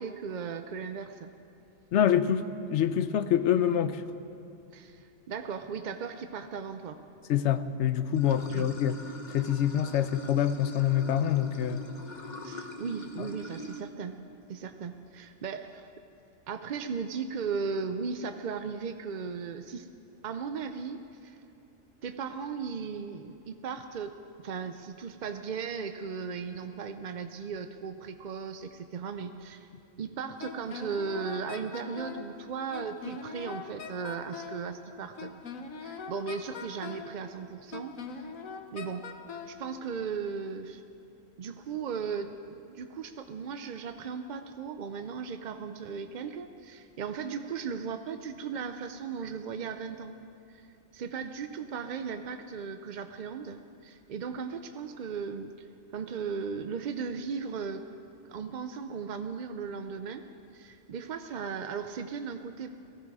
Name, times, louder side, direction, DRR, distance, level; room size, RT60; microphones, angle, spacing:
voice 1, 0.0-1.3 4.7-7.0 8.4-8.7 12.4-14.2 14.5-15.9 16.5-19.9 20.2-21.4 22.0-24.1 24.4-29.7 30.0-35.4 35.8-38.3 38.7-39.0 39.5-40.8 41.4-42.3 42.7-50.2 50.5-50.7 50.9-57.8 58.3-60.2 60.5-62.7, right 5 dB, 60° right, 8 dB, 0.5 m, -37 dB
voice 2, 1.9-4.0 7.3-9.0 9.3-11.9 13.2-13.3, left 9 dB, 65° left, 12 dB, 0.9 m, -26 dB
Water / Sink (filling or washing), 8.1-13.8, equal, 35° left, 1.0 m, -43 dB
Wind instrument woodwind instrument, 30.4-32.3 32.7-34.6 35.2-37.1 37.7-39.6, left 5 dB, 85° left, 1.4 m, -41 dB
18.5 x 15.0 x 4.8 m, 2.7 s
omnidirectional pair, 1.4 m